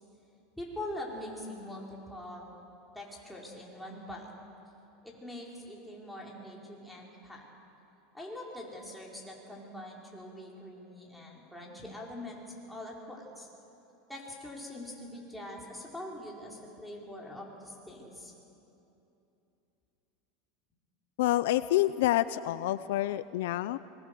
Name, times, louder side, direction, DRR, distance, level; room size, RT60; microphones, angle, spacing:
voice 1, 0.6-2.5 2.9-4.3 5.0-7.5 8.1-13.5 14.1-18.3, left 1 dB, 5° left, -3 dB, 4.5 m, -43 dB
voice 2, 21.2-23.8, left 15 dB, 80° left, 15 dB, 0.5 m, -28 dB
25.5 x 20.5 x 6.8 m, 2.8 s
supercardioid pair, 130°, 0 cm